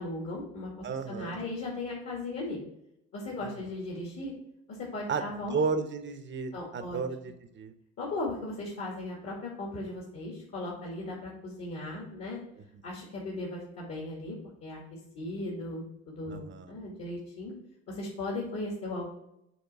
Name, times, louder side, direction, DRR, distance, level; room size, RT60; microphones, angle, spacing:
voice 1, 0.0-2.6 3.1-4.3 4.8-5.6 6.5-7.3 8.0-12.4 12.8-14.8 15.1-17.5 17.9-19.1, left 2 dB, 50° left, -3 dB, 1.9 m, -37 dB
voice 2, 0.8-1.4 3.4-3.5 5.1-5.3 5.5-7.7 16.3-16.7, right 5 dB, 40° right, 9 dB, 0.8 m, -33 dB
7.2 x 3.2 x 4.6 m, 0.83 s
cardioid pair, 100°, 30 cm